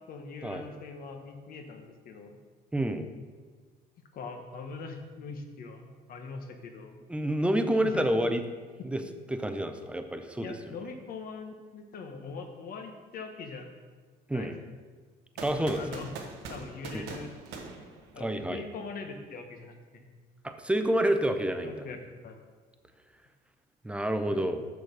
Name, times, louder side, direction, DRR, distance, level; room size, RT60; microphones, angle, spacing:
voice 1, 0.1-2.4 4.1-7.0 7.8-8.1 8.8-8.9 10.4-13.7 14.3-14.5 15.5-16.1 16.5-17.4 18.1-19.7 20.0-20.1 21.3-22.0 22.2-22.4 24.3-24.4, left 4 dB, 60° left, 5 dB, 1.1 m, -42 dB
voice 2, 2.7-3.1 7.1-8.4 8.8-9.0 9.3-10.5 14.3-14.5 15.4-15.8 16.9-17.0 18.2-18.6 20.4-21.7 23.8-24.6, right 1 dB, 5° right, 7 dB, 0.6 m, -28 dB
sound 1, 15.4-18.6, right 4 dB, 90° right, 1.1 m, -42 dB
6.5 x 6.4 x 5.2 m, 1.5 s
cardioid pair, 110°, 17 cm